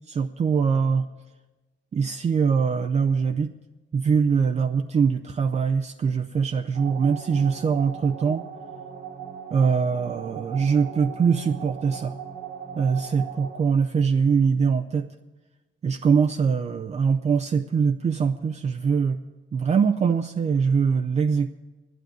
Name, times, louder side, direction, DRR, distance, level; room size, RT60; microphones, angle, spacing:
voice 1, 0.1-1.1 1.9-3.5 3.9-8.5 9.5-12.1 12.8-15.1 15.8-19.2 19.5-21.5, right 6 dB, 35° right, 6 dB, 0.5 m, -23 dB
sound 1, 6.7-13.6, right 7 dB, 80° right, 1.9 m, -39 dB
10.5 x 9.2 x 9.4 m, 1.2 s
cardioid pair, 90°, 20 cm